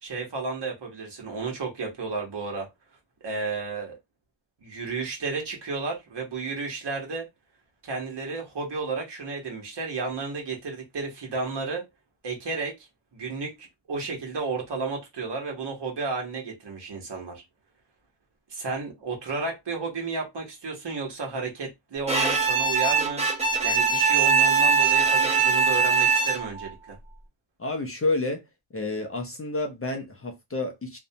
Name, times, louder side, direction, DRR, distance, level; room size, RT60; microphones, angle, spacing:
voice 1, 0.0-2.7 3.2-4.0 4.6-7.3 7.8-11.9 12.2-12.7 13.1-17.4 18.5-23.3 23.6-27.0, right 4 dB, 65° right, 1.1 m, -32 dB
Bowed string instrument, 22.1-26.7, right 5 dB, 15° right, 0.7 m, -21 dB
voice 2, 27.6-28.4 28.7-31.0, left 2 dB, 30° left, 0.4 m, -29 dB
2.6 x 2.1 x 2.7 m
wide cardioid pair, 155°, 45 cm